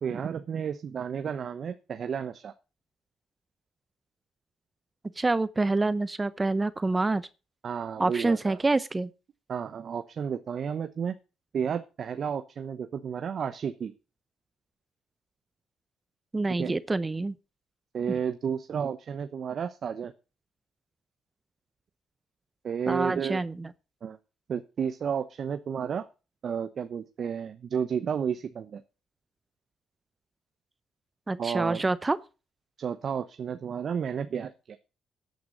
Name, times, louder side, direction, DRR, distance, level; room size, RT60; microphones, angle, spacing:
voice 1, 0.0-2.5 7.6-8.6 9.5-11.1 11.5-13.9 16.6-16.7 17.9-20.1 22.6-23.4 24.0-24.2 24.5-26.1 26.4-28.8 31.4-31.8 32.8-34.8, right 7 dB, 55° right, 0.9 m, -32 dB
voice 2, 5.2-7.3 8.0-9.1 16.3-17.4 22.9-23.7 31.3-32.2, right 3 dB, 20° right, 0.7 m, -27 dB
14.0 x 9.5 x 4.0 m
cardioid pair, 90°, 0 cm